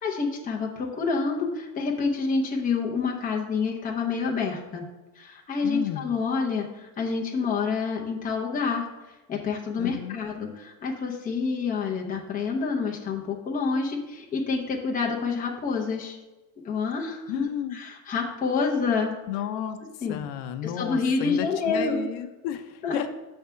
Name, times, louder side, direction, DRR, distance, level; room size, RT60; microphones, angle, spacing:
voice 1, 0.0-4.8 5.2-8.9 9.3-16.2 16.6-19.2 20.0-20.2 20.6-22.1 22.8-23.0, left 4 dB, 20° left, 0 dB, 0.7 m, -28 dB
voice 2, 5.6-6.1 9.8-10.2 17.3-17.8 19.3-19.8 20.1-23.1, left 10 dB, 80° left, 9 dB, 0.7 m, -32 dB
6.4 x 3.5 x 5.6 m, 1.1 s
cardioid pair, 170°, 42 cm